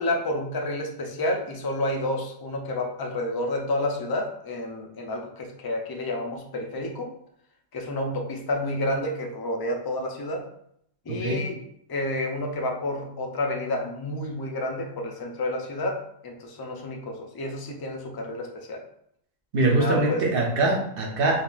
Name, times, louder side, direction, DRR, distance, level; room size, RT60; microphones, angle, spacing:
voice 1, 0.0-7.1 7.7-10.5 11.1-11.6 11.9-18.8 19.6-20.2, left 1 dB, 40° left, 2 dB, 0.3 m, -30 dB
voice 2, 11.1-11.5 19.5-21.4, right 2 dB, 60° right, 0 dB, 0.9 m, -23 dB
3.7 x 2.8 x 2.5 m, 0.70 s
omnidirectional pair, 1.1 m